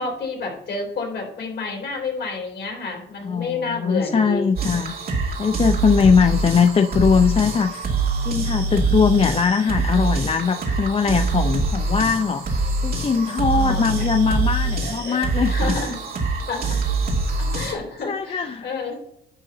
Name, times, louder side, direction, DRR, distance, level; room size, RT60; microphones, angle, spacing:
voice 1, 0.0-4.8 5.9-6.2 13.5-14.0 14.8-15.2 15.5-16.0 16.5-16.8 17.4-19.0, left 3 dB, 60° left, 0 dB, 3.7 m, -30 dB
voice 2, 3.2-5.0 5.4-7.8 8.2-15.7 18.1-18.7, left 5 dB, 30° left, 9 dB, 0.5 m, -20 dB
sound 1, 4.6-17.7, right 3 dB, 50° right, 2.5 m, -24 dB
11.0 x 3.7 x 6.9 m, 0.80 s
cardioid pair, 90°, 20 cm